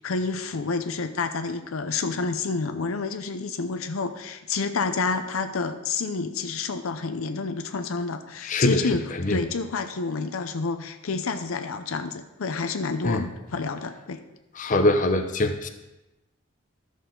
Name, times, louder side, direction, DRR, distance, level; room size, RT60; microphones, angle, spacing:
voice 1, 0.0-14.2, left 4 dB, 85° left, 8 dB, 0.6 m, -29 dB
voice 2, 8.5-8.8 9.2-9.4 13.0-13.2 14.6-15.7, left 2 dB, 40° left, 6 dB, 0.7 m, -22 dB
12.5 x 6.3 x 3.8 m, 1.0 s
head